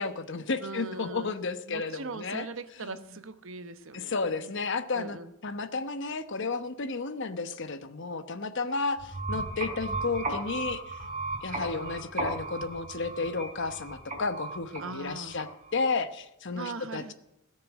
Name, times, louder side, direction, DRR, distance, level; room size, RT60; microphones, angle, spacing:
voice 1, 0.0-2.5 2.8-2.9 3.9-5.2 5.4-11.0 11.4-17.0, left 4 dB, 60° left, 10 dB, 1.0 m, -32 dB
voice 2, 0.6-1.3 1.7-4.5 4.9-5.3 14.8-15.4 16.5-17.1, right 3 dB, 65° right, 11 dB, 1.0 m, -40 dB
sound 1, 9.0-15.8, right 2 dB, 30° right, 4.1 m, -36 dB
17.5 x 6.7 x 9.2 m, 0.91 s
head